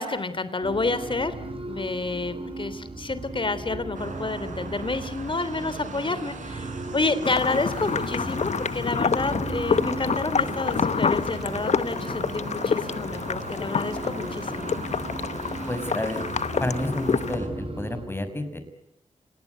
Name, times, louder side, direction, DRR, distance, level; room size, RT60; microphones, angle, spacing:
voice 1, 0.0-1.3 1.7-14.7, left 3 dB, 40° left, 14 dB, 3.4 m, -29 dB
sound 1, 0.6-18.0, right 2 dB, 45° right, 7.3 m, -37 dB
sound 2, 3.9-17.5, right 3 dB, 75° right, 6.1 m, -39 dB
sound 3, 7.2-17.4, left 6 dB, 60° left, 1.0 m, -28 dB
voice 2, 15.7-16.2 16.6-18.6, left 1 dB, 15° left, 10 dB, 5.6 m, -30 dB
30.0 x 19.0 x 9.4 m, 0.82 s
cardioid pair, 70°, 13 cm